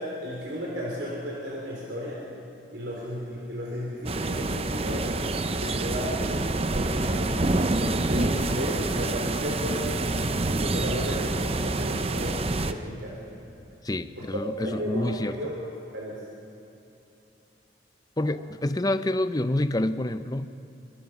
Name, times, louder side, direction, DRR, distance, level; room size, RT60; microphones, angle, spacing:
voice 1, 0.0-2.3 2.7-5.1 5.5-6.2 6.5-7.3 8.0-9.9 10.4-13.2 14.2-15.7 15.9-16.2, equal, 80° right, -3 dB, 4.0 m, -34 dB
sound 1, 4.0-12.7, right 2 dB, 35° right, 0.8 m, -27 dB
voice 2, 13.8-15.5 18.2-20.5, left 1 dB, 20° left, 12 dB, 0.6 m, -27 dB
24.5 x 22.5 x 6.2 m, 2.8 s
head